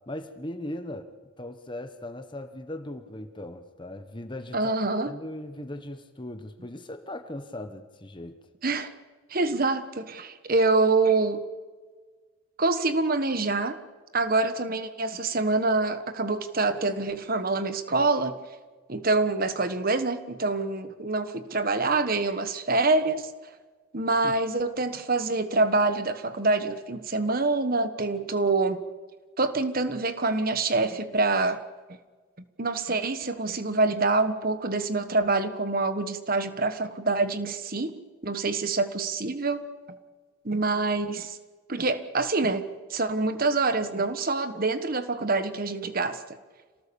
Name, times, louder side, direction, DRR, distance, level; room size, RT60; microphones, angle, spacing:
voice 1, 0.1-1.1 1.4-4.7 5.1-8.4 24.2-24.3, left 1 dB, 20° left, 1.2 m, -38 dB
voice 2, 4.5-5.1 8.6-8.9 9.3-11.4 12.6-13.8 14.1-18.4 18.9-23.3 23.9-28.8 29.4-31.6 32.6-38.0 38.2-39.6 40.4-41.4 41.7-46.2, right 3 dB, 40° right, 1.3 m, -26 dB
27.5 x 18.5 x 7.1 m
head